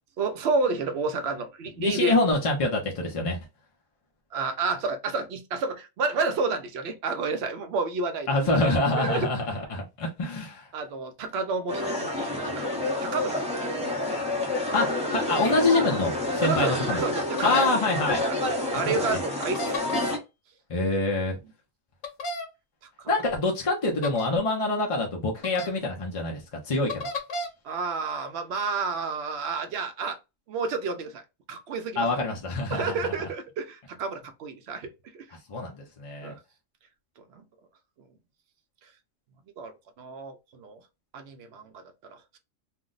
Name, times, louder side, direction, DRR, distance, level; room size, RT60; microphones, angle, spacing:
voice 1, 0.2-2.2 4.3-8.7 9.0-9.3 10.7-12.7 13.0-13.4 16.4-16.8 17.0-17.6 18.3-18.4 18.7-19.8 23.0-23.1 27.6-30.2 30.5-31.2 31.5-32.1 32.7-35.3 36.2-36.4 37.2-37.4 39.6-40.8 41.1-41.8 42.1-42.4, right 4 dB, 65° right, 0.7 m, -30 dB
voice 2, 1.8-3.4 8.3-10.7 14.7-17.0 17.4-18.2 18.8-19.0 20.7-21.4 23.1-27.0 32.0-33.1 35.5-36.3, left 2 dB, 45° left, 0.4 m, -26 dB
sound 1, 11.7-20.2, left 1 dB, 5° right, 0.5 m, -29 dB
sound 2, 15.2-15.5 17.4-17.7 19.4-20.2 22.0-22.5 24.0-24.3 25.4-25.7 26.9-27.5, left 1 dB, 90° left, 1.1 m, -33 dB
2.5 x 2.0 x 3.7 m
omnidirectional pair, 1.4 m